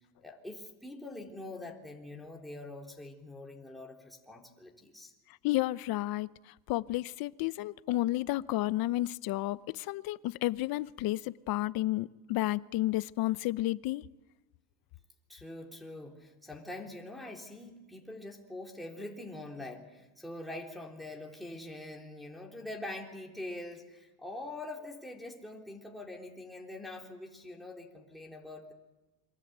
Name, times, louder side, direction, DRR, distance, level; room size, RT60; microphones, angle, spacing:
voice 1, 0.2-5.1 15.3-28.7, left 2 dB, ahead, 3.4 m, -44 dB
voice 2, 5.4-6.3 6.7-14.0, left 16 dB, 65° left, 0.8 m, -31 dB
28.0 x 24.0 x 8.1 m
cardioid pair, 145°, 38 cm